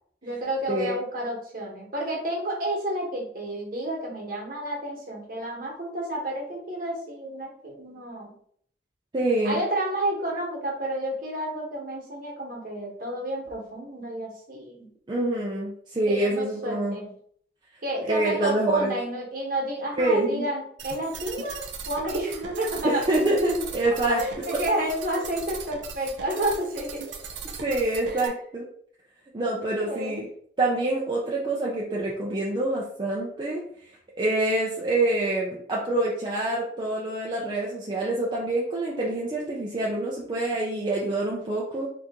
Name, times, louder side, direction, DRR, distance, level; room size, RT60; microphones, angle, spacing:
voice 1, 0.2-8.4 9.4-14.9 16.1-17.1 17.8-23.0 24.1-27.2 28.1-28.2 29.8-30.2, right 1 dB, 50° right, -2 dB, 1.1 m, -31 dB
voice 2, 9.1-9.6 15.1-17.0 18.1-18.9 20.0-20.5 22.8-24.2 27.6-28.7 29.3-30.3 30.6-33.6 34.2-41.9, right 2 dB, 25° right, -4 dB, 0.5 m, -26 dB
sound 1, 20.8-28.3, right 5 dB, 80° right, 0.5 m, -38 dB
2.8 x 2.5 x 3.5 m, 0.62 s
head